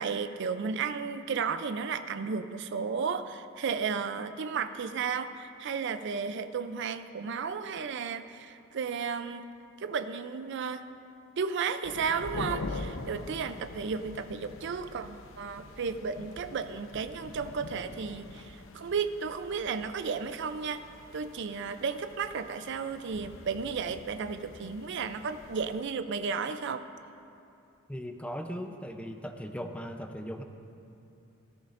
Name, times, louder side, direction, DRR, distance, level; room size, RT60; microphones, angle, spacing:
voice 1, 0.0-9.5 9.8-10.9 11.4-20.9 21.1-26.9, right 5 dB, 60° right, 10 dB, 0.4 m, -33 dB
sound 1, 11.8-25.8, left 2 dB, 75° left, 0.7 m, -44 dB
voice 2, 27.9-30.4, equal, 5° left, 5 dB, 0.6 m, -38 dB
17.5 x 13.5 x 2.5 m, 2.7 s
head